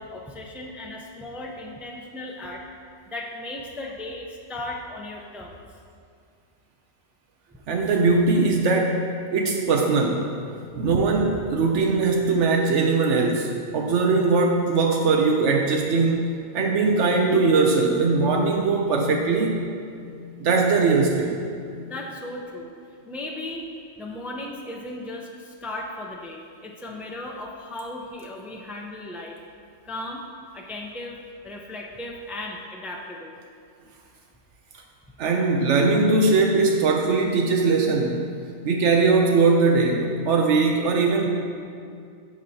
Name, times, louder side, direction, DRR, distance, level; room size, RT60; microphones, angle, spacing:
voice 1, 0.0-2.6 3.1-5.6 21.9-22.7 23.1-23.6 24.0-29.4 29.8-30.2 30.5-31.2 31.4-33.4, left 1 dB, ahead, -1 dB, 0.6 m, -36 dB
voice 2, 7.7-9.1 9.3-10.3 10.7-16.3 16.5-19.6 20.4-21.4 35.2-38.2 38.6-41.3, right 4 dB, 80° right, 2 dB, 1.0 m, -20 dB
11.5 x 7.5 x 2.8 m, 2.3 s
omnidirectional pair, 1.2 m